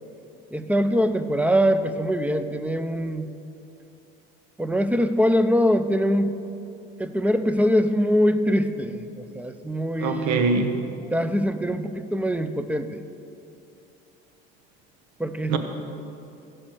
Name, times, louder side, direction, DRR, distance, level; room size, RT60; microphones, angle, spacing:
voice 1, 0.5-3.3 4.6-6.4 7.0-10.5 11.1-13.0 15.2-15.6, equal, 5° right, 11 dB, 0.6 m, -23 dB
voice 2, 10.0-10.8 15.5-15.6, right 4 dB, 70° right, 7 dB, 1.2 m, -23 dB
15.5 x 6.4 x 6.2 m, 2.7 s
supercardioid pair, 80°, 30 cm